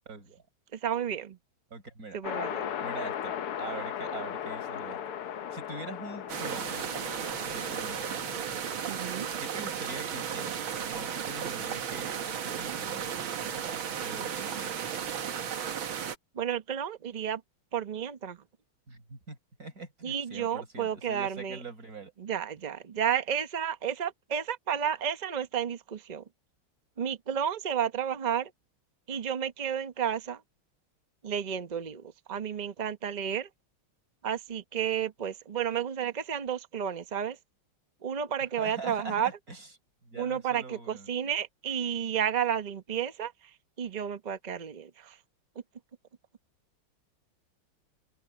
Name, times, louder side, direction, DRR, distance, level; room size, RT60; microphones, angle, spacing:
voice 1, 0.1-0.4 1.7-2.2 2.8-5.0 5.5-6.8 7.4-8.3 9.4-15.1 18.9-22.1 38.6-39.7 40.0-41.1, right 3 dB, 40° right, 5.1 m, -43 dB
voice 2, 0.7-1.4 2.1-2.6 8.9-9.3 16.3-17.4 17.7-18.4 20.0-21.6 22.2-26.2 27.0-28.5 29.1-30.4 31.2-33.5 34.2-37.4 38.0-39.3 40.2-43.3 43.8-45.2, right 8 dB, 85° right, 0.3 m, -32 dB
sound 1, 2.2-9.6, left 9 dB, 85° left, 2.2 m, -38 dB
sound 2, 6.3-16.2, right 8 dB, 65° right, 2.2 m, -34 dB
omnidirectional pair, 2.4 m